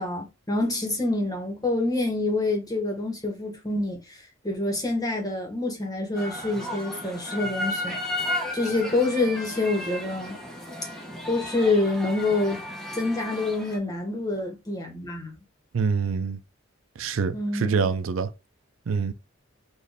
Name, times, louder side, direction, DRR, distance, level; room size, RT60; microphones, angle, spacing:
voice 1, 0.0-8.0 8.5-10.4 11.3-12.6 13.0-15.3 17.3-17.8, left 2 dB, 20° left, 1.3 m, -27 dB
sound 1, 6.2-13.8, left 1 dB, ahead, 0.9 m, -34 dB
voice 2, 15.7-16.4 17.0-18.3 18.9-19.1, right 5 dB, 80° right, 0.5 m, -25 dB
4.3 x 2.6 x 3.4 m
head